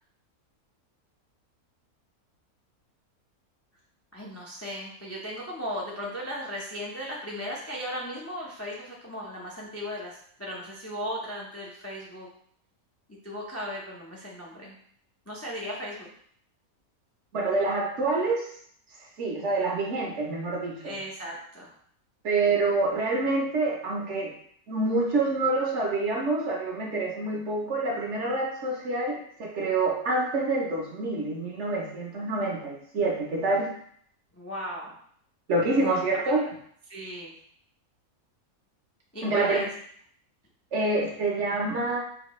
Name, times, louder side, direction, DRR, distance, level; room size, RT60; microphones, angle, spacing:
voice 1, 4.1-12.3 13.2-14.7 15.3-16.1 20.8-21.7 34.3-35.0 35.8-36.5 36.9-37.3 39.1-39.7, equal, 20° left, -4 dB, 0.4 m, -36 dB
voice 2, 17.3-18.5 19.2-21.0 22.2-24.3 24.7-33.7 35.5-36.5 39.2-39.6 40.7-42.0, right 2 dB, 55° right, -1 dB, 1.0 m, -27 dB
4.9 x 2.8 x 3.1 m, 0.63 s
omnidirectional pair, 1.6 m